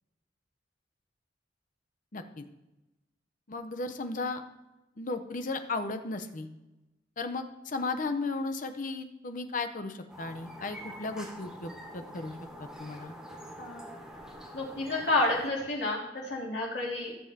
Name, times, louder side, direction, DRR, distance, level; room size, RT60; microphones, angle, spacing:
voice 1, 2.1-2.4 3.5-4.4 5.0-6.5 7.2-13.1, left 3 dB, 45° left, 8 dB, 0.8 m, -35 dB
sound 1, 10.1-15.5, equal, 5° right, 1.3 m, -46 dB
voice 2, 14.5-17.3, left 2 dB, 65° left, -5 dB, 2.9 m, -30 dB
15.5 x 7.2 x 2.8 m, 1.0 s
head